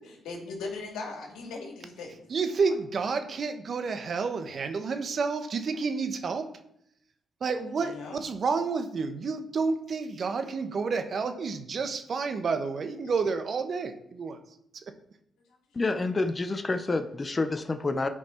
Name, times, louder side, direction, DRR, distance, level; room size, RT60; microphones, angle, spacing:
voice 1, 0.2-2.3 7.8-8.2 16.1-16.2, left 3 dB, 85° left, 0 dB, 2.3 m, -38 dB
voice 2, 2.3-6.5 7.4-14.4 14.8-14.9, right 4 dB, 55° right, 7 dB, 1.1 m, -30 dB
voice 3, 15.7-18.1, left 3 dB, 35° left, 9 dB, 0.8 m, -28 dB
11.0 x 5.1 x 4.5 m, 0.73 s
supercardioid pair, 55°, 0 cm